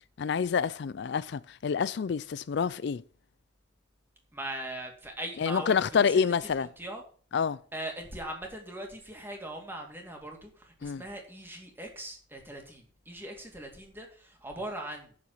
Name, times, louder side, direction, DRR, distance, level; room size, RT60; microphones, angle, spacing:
voice 1, 0.2-3.0 5.4-6.7 7.3-7.6 10.8-11.0, left 6 dB, 65° left, 0.4 m, -27 dB
voice 2, 4.3-7.0 7.7-15.1, right 1 dB, 10° right, 2.4 m, -40 dB
7.6 x 7.0 x 7.8 m
head